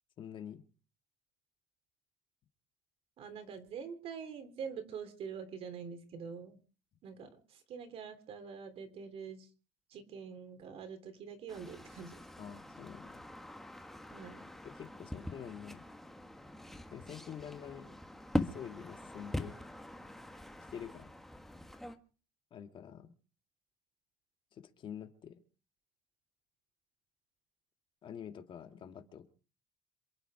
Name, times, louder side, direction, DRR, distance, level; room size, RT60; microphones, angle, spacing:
voice 1, 0.2-0.6 12.4-13.2 14.6-15.8 16.9-18.0 18.4-19.6 20.7-21.1 22.5-23.1 24.5-25.4 28.0-29.3, left 8 dB, 40° left, 7 dB, 1.9 m, -47 dB
voice 2, 3.2-6.6 7.0-9.5 9.9-12.2 14.1-14.5, right 6 dB, 50° right, 10 dB, 3.3 m, -45 dB
sound 1, 11.5-22.0, left 1 dB, ahead, 1.4 m, -42 dB
27.5 x 9.3 x 4.9 m, 0.39 s
cardioid pair, 135°, 12 cm